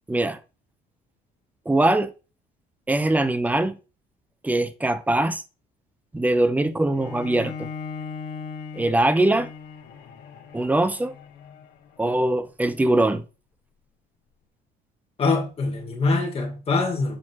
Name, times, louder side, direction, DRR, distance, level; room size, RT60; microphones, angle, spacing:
voice 1, 0.1-0.4 1.7-2.1 2.9-3.8 4.4-5.4 6.1-7.7 8.8-9.5 10.5-11.2 12.0-13.2, right 1 dB, 10° right, 0.6 m, -22 dB
Bowed string instrument, 6.9-12.2, left 5 dB, 70° left, 1.3 m, -38 dB
voice 2, 15.2-17.2, left 3 dB, 35° left, 1.7 m, -24 dB
7.5 x 4.6 x 2.9 m
cardioid pair, 110°, 17 cm